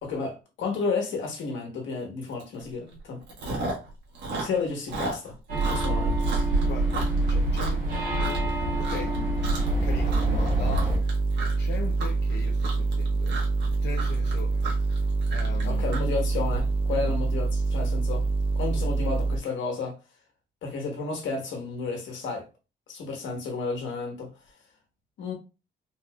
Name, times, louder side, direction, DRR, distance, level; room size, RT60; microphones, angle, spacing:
voice 1, 0.0-3.2 4.4-6.2 15.6-18.3 18.5-19.9 20.6-22.4 22.9-24.3 25.2-25.3, left 4 dB, 85° left, 1.5 m, -32 dB
Chewing mastication, 2.4-2.6 2.9-8.5 8.8-9.2 9.4-9.8 10.1-16.6, right 2 dB, 70° right, 1.4 m, -35 dB
sound 1, 5.5-11.0, right 2 dB, 50° right, 1.6 m, -26 dB
voice 2, 6.6-9.2 9.7-11.2 11.6-13.4 13.8-14.7 15.3-15.9 16.9-17.2, left 6 dB, 65° left, 0.6 m, -40 dB
sound 2, 9.6-19.4, right 3 dB, 30° right, 0.4 m, -26 dB
4.1 x 3.2 x 2.4 m
cardioid pair, 155°, 19 cm